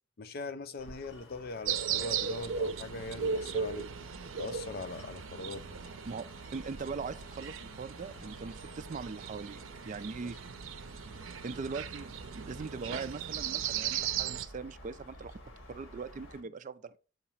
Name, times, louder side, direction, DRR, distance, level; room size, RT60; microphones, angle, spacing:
voice 1, 0.2-3.9 4.4-5.6 10.2-10.3, left 3 dB, 50° left, 0.5 m, -41 dB
sound 1, 0.8-16.4, left 1 dB, 85° left, 1.6 m, -53 dB
sound 2, 1.7-14.5, right 7 dB, 80° right, 0.6 m, -37 dB
voice 2, 6.5-9.6 9.8-10.4 11.4-15.4 15.7-17.0, right 4 dB, 40° right, 0.4 m, -40 dB
7.3 x 2.9 x 5.6 m
head